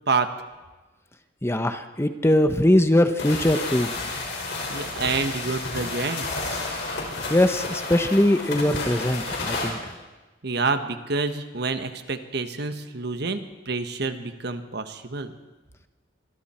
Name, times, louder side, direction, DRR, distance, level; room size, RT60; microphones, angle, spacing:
voice 1, 1.4-3.9 7.3-9.9, left 1 dB, 15° left, 8 dB, 0.9 m, -21 dB
sound 1, 3.2-9.7, left 3 dB, 65° left, 5.3 m, -31 dB
voice 2, 4.7-6.3 10.4-15.3, right 4 dB, 60° right, 8 dB, 1.3 m, -28 dB
26.5 x 22.5 x 4.4 m, 1.2 s
head